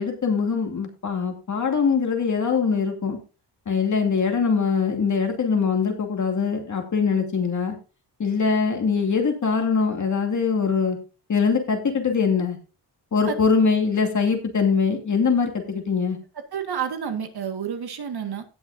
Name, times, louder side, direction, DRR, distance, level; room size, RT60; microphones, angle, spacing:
voice 1, 0.0-3.2 3.7-7.8 8.2-11.0 11.3-12.6 13.1-16.2, left 5 dB, 45° left, 4 dB, 2.6 m, -22 dB
voice 2, 16.5-18.4, right 7 dB, 60° right, 7 dB, 1.8 m, -29 dB
18.0 x 6.3 x 2.7 m, 0.33 s
wide cardioid pair, 140°, 42 cm